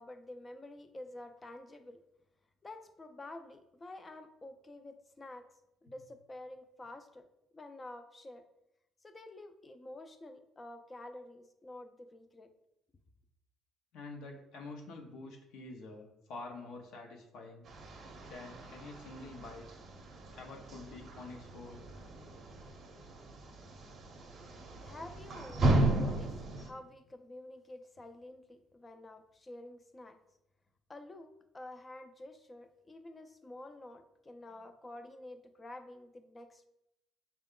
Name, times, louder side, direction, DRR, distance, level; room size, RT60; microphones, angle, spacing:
voice 1, 0.0-2.0 2.6-5.5 5.8-7.2 7.5-8.4 9.0-12.5 24.8-30.2 30.9-36.7, left 2 dB, 20° left, 8 dB, 0.4 m, -49 dB
voice 2, 13.9-17.6 18.3-19.7 20.3-21.9 34.5-34.6, left 3 dB, 75° left, 1 dB, 0.7 m, -47 dB
sound 1, 17.6-26.7, right 1 dB, 40° right, 0.7 m, -35 dB
6.4 x 2.2 x 3.7 m, 0.86 s
cardioid pair, 140°, 0 cm